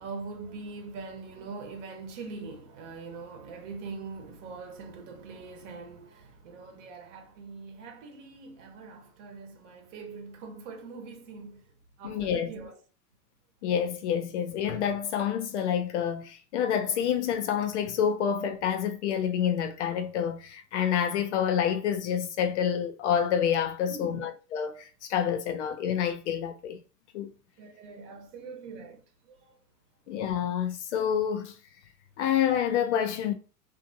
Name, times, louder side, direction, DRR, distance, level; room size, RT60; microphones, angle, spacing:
voice 1, 0.0-11.6 12.0-12.8 23.9-24.3 27.6-29.5, right 4 dB, 50° right, 1.0 m, -42 dB
voice 2, 12.0-12.5 13.6-26.8 27.1-27.3 30.1-31.5 32.2-33.3, left 8 dB, 50° left, 0.5 m, -28 dB
2.6 x 2.4 x 2.6 m
hypercardioid pair, 125°, 46 cm